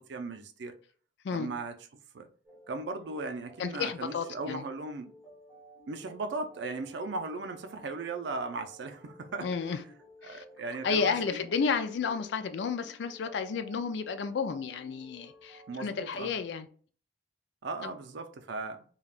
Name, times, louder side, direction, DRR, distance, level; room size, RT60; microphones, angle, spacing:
voice 1, 0.1-0.7 1.3-1.8 2.1-2.3 2.7-5.1 5.9-9.5 10.2-11.4 15.7-16.3 17.6-18.8, right 3 dB, 65° right, 0.4 m, -37 dB
sound 1, 2.4-15.9, equal, 10° right, 0.9 m, -55 dB
voice 2, 3.6-4.6 9.4-9.8 10.2-10.4 10.8-16.7 17.8-17.9, left 5 dB, 65° left, 0.3 m, -32 dB
3.4 x 2.3 x 2.4 m
head